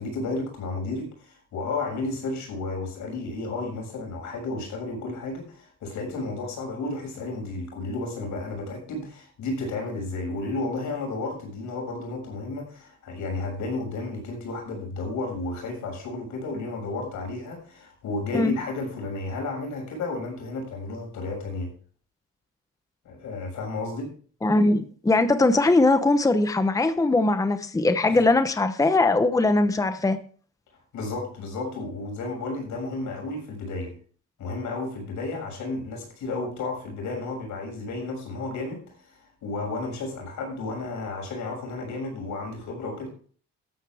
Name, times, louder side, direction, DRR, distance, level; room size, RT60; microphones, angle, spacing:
voice 1, 0.0-21.7 23.0-24.1 28.1-28.2 30.9-33.9 34.4-43.1, left 3 dB, 85° left, 7.0 m, -32 dB
voice 2, 24.4-30.2, left 2 dB, 10° left, 0.9 m, -21 dB
13.5 x 12.5 x 3.5 m
cardioid pair, 120°, 29 cm